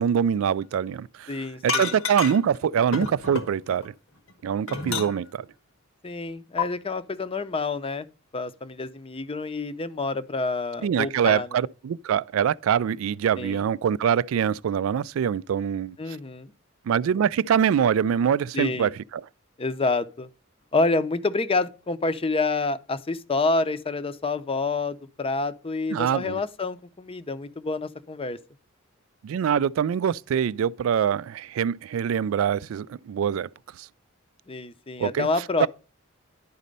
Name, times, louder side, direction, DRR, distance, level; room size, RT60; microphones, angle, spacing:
voice 1, 0.0-3.9 4.4-5.5 10.8-16.0 16.9-19.3 25.9-26.4 29.2-33.5 33.8-33.9 35.0-35.3 35.6-35.7, right 8 dB, 70° right, 0.3 m, -24 dB
voice 2, 1.3-1.9 6.0-8.1 8.3-11.6 13.4-13.6 16.0-16.5 18.5-18.9 19.6-20.3 20.7-28.4 34.5-35.7, left 3 dB, 25° left, 0.6 m, -28 dB
sound 1, 1.7-2.6 2.9-3.9 4.3-5.4 6.6-6.7, left 5 dB, 85° left, 1.3 m, -29 dB
11.0 x 4.2 x 5.2 m
head